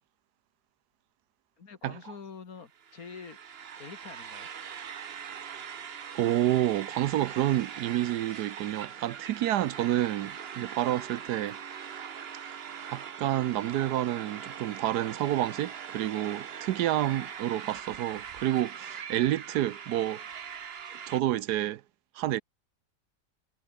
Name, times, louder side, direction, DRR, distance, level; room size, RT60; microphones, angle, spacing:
voice 1, 1.6-3.4 3.8-4.5, left 5 dB, 55° left, 2.3 m, -46 dB
sound 1, 2.7-21.2, right 7 dB, 45° right, 1.0 m, -42 dB
voice 2, 6.1-11.6 12.9-20.2 21.1-21.8 22.1-22.4, right 13 dB, 75° right, 1.2 m, -29 dB
omnidirectional pair, 1.8 m